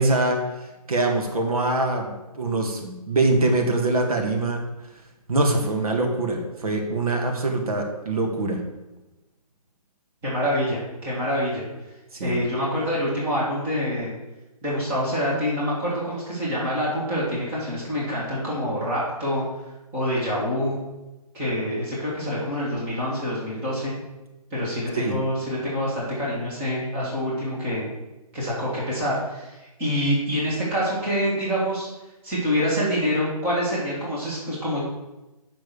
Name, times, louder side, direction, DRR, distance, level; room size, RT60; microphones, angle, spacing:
voice 1, 0.0-4.7 5.3-8.6 12.1-12.4 24.9-25.2, right 2 dB, 65° right, 3 dB, 1.8 m, -24 dB
voice 2, 10.2-11.6 12.2-14.1 14.6-19.4 19.9-20.8 21.3-23.9 24.5-27.8 28.3-31.9 32.2-34.8, equal, 10° right, -7 dB, 1.9 m, -26 dB
6.8 x 5.9 x 6.9 m, 1.0 s
hypercardioid pair, 170°, 20 cm